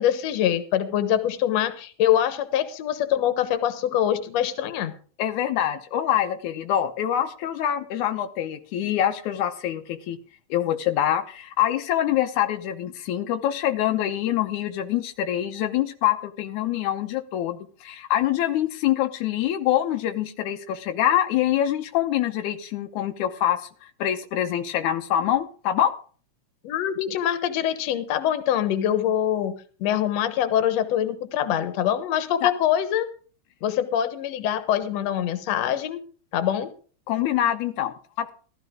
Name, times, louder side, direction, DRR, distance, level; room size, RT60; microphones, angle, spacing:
voice 1, 0.0-4.9 26.6-29.5 29.8-33.1 33.6-36.0 36.3-36.7, left 10 dB, 65° left, 10 dB, 2.2 m, -24 dB
voice 2, 5.2-10.2 10.5-23.7 24.0-25.9 32.4-32.5 37.1-38.3, left 11 dB, 90° left, 7 dB, 2.3 m, -25 dB
14.5 x 13.0 x 3.7 m, 0.40 s
omnidirectional pair, 3.4 m